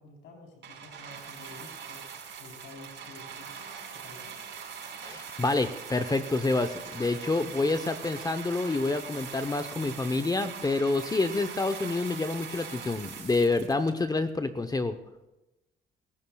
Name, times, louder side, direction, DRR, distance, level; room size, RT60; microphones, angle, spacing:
voice 1, 0.0-2.0 2.4-4.4, left 2 dB, 85° left, 0 dB, 4.0 m, -50 dB
sound 1, 0.6-14.3 15.1-15.2, right 7 dB, 70° right, 5.0 m, -42 dB
voice 2, 5.0-15.0, left 3 dB, 20° left, 9 dB, 0.8 m, -28 dB
27.0 x 14.5 x 2.3 m, 0.97 s
cardioid pair, 90°, 20 cm